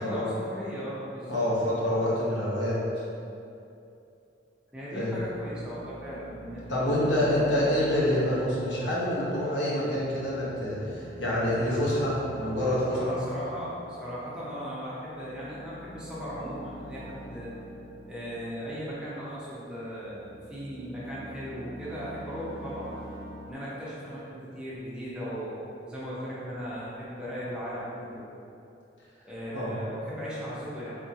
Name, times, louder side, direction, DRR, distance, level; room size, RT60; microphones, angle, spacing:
voice 1, 0.0-1.4 4.7-7.4 12.9-17.5 18.1-22.9 23.4-28.3 29.2-31.0, equal, 5° right, -9 dB, 0.7 m, -37 dB
voice 2, 1.3-2.8 4.9-5.2 6.7-13.0 29.5-29.7, left 1 dB, 80° left, -7 dB, 1.0 m, -27 dB
sound 1, 5.2-19.5 20.0-23.5, right 1 dB, 80° right, 0.4 m, -45 dB
3.7 x 3.6 x 2.8 m, 2.7 s
head